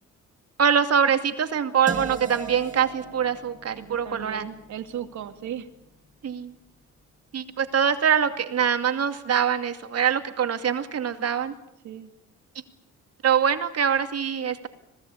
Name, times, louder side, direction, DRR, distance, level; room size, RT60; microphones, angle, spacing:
voice 1, 0.6-4.5 6.2-6.5 7.3-11.5 13.2-14.7, right 7 dB, 55° right, 8 dB, 2.5 m, -24 dB
sound 1, 1.9-7.8, right 3 dB, 25° right, 3.7 m, -41 dB
voice 2, 3.8-5.7 11.8-12.1, right 10 dB, 75° right, 9 dB, 2.3 m, -37 dB
27.0 x 19.0 x 8.6 m, 0.79 s
cardioid pair, 90°, 30 cm